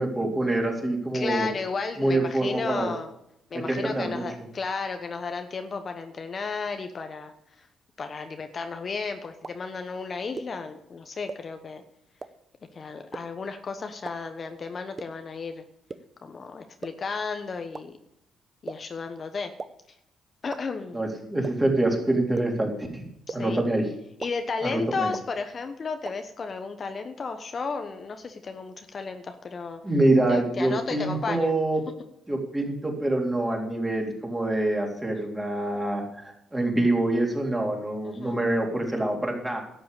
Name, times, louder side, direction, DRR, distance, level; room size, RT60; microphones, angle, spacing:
voice 1, 0.0-1.5 2.0-2.9 3.5-4.2 20.9-23.0 23.3-23.8 24.6-25.1 29.8-31.8 32.3-39.6, right 2 dB, 15° right, 0 dB, 3.6 m, -25 dB
voice 2, 1.1-3.1 3.5-7.7 8.0-11.8 12.7-15.6 16.2-17.9 18.6-19.5 20.4-21.0 23.3-23.6 24.2-29.8 30.3-31.5 38.0-38.4, left 4 dB, 40° left, 7 dB, 1.1 m, -33 dB
sound 1, 9.4-9.5 10.4-10.5 11.3-11.4 12.2-12.3 13.1-13.2 14.0-14.1 15.0-15.1 15.9-16.0 16.8-16.9 17.7-17.8 18.7-18.8 19.6-19.7 20.5-20.6 21.4-21.5 22.4-22.5 23.3-23.4 24.2-24.3 25.1-25.2 26.0-26.1, right 4 dB, 30° right, 0.9 m, -35 dB
12.0 x 7.7 x 8.4 m, 0.78 s
cardioid pair, 90°, 0 cm